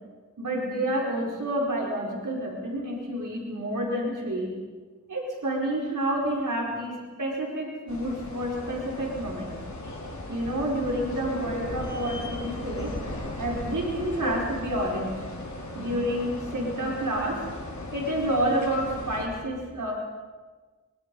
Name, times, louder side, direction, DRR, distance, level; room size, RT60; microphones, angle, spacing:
voice 1, 0.4-4.5 5.1-9.5 10.3-12.9 13.4-15.2 15.7-17.4 17.9-19.9, right 1 dB, 85° right, -2 dB, 4.7 m, -29 dB
sound 1, 7.9-19.3, left 2 dB, 70° left, 4.8 m, -37 dB
25.0 x 23.5 x 5.4 m, 1.4 s
wide cardioid pair, 60°, 30 cm